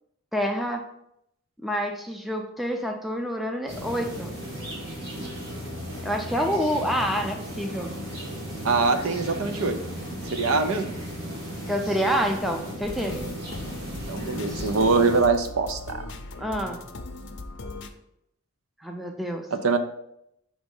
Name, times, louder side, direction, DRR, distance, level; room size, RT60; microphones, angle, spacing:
voice 1, 0.3-0.8 1.6-4.3 6.0-7.9 11.7-13.3 16.4-16.8 18.8-19.5, equal, ahead, 3 dB, 0.4 m, -27 dB
sound 1, 3.7-15.2, equal, 45° right, 1.7 m, -35 dB
voice 2, 8.6-9.8 10.3-11.0 14.1-16.0 19.5-19.8, right 4 dB, 70° right, 7 dB, 0.6 m, -23 dB
sound 2, 12.8-17.9, left 2 dB, 55° left, 0.5 m, -39 dB
5.1 x 3.6 x 5.3 m, 0.78 s
head